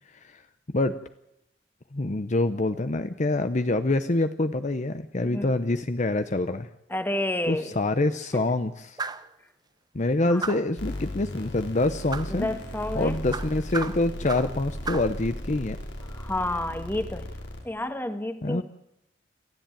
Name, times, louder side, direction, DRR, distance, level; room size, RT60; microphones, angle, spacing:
voice 1, 0.1-0.4 0.7-1.0 1.9-6.7 7.5-9.0 9.9-12.5 12.9-15.8 18.4-18.6, left 2 dB, 40° left, 10 dB, 0.8 m, -26 dB
voice 2, 6.9-7.8 8.3-8.4 10.3-10.4 12.3-13.2 16.1-17.3 17.6-18.6, left 1 dB, 10° left, 8 dB, 1.6 m, -30 dB
sound 1, 9.0-9.3 10.4-10.8 12.1-12.4 13.3-14.6 14.9-15.2, right 4 dB, 25° right, 0.8 m, -34 dB
sound 2, 10.8-17.6, equal, 85° left, 5.3 m, -36 dB
28.5 x 13.0 x 9.1 m, 0.81 s
head